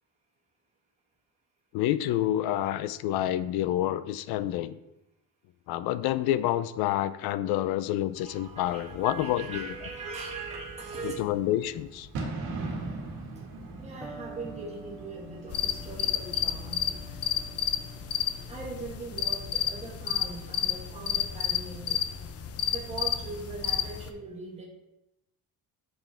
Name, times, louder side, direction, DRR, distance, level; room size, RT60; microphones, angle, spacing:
voice 1, 1.7-4.8 5.7-9.7 11.0-12.1, left 13 dB, 90° left, 14 dB, 0.5 m, -28 dB
voice 2, 8.1-11.3 13.3-13.5 13.8-17.1 18.5-22.0 22.7-24.6, right 4 dB, 20° right, -4 dB, 1.7 m, -40 dB
Bird / Fireworks, 8.1-17.3, right 3 dB, 85° right, 1.9 m, -41 dB
Electric guitar, 14.0-21.8, right 2 dB, 5° left, 0.9 m, -50 dB
sound 1, 15.5-24.1, left 10 dB, 40° left, 0.6 m, -31 dB
7.0 x 5.8 x 3.4 m, 0.90 s
cardioid pair, 140°, 36 cm